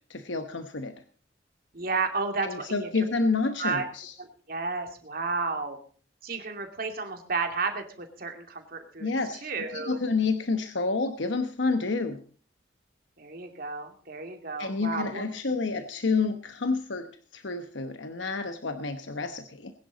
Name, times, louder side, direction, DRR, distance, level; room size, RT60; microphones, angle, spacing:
voice 1, 0.1-0.9 2.4-4.1 9.0-12.2 14.6-19.7, left 4 dB, 75° left, 8 dB, 1.0 m, -29 dB
voice 2, 1.7-3.1 3.6-3.8 4.2-5.8 6.2-9.1 9.4-10.0 13.2-15.2, right 4 dB, 50° right, 4 dB, 2.6 m, -32 dB
21.0 x 10.5 x 4.0 m, 0.42 s
head